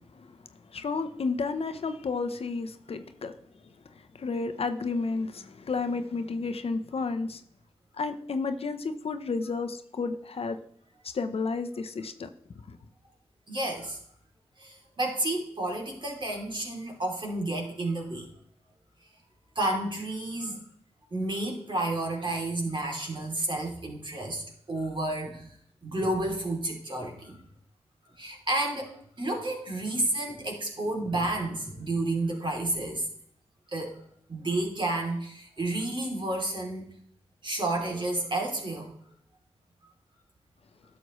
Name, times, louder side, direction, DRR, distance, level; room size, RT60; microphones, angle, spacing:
voice 1, 0.7-3.3 3.9-7.4 8.0-10.6 11.0-12.3 12.7-12.8, left 4 dB, 65° left, 0.8 m, -32 dB
voice 2, 13.5-14.0 14.6-18.3 19.5-20.6 21.1-24.4 24.7-25.6 25.8-27.4 28.2-33.1 33.7-34.0 34.3-36.9 37.4-38.9, right 2 dB, 45° right, 3.1 m, -31 dB
11.0 x 7.0 x 3.1 m
cardioid pair, 50°, 11 cm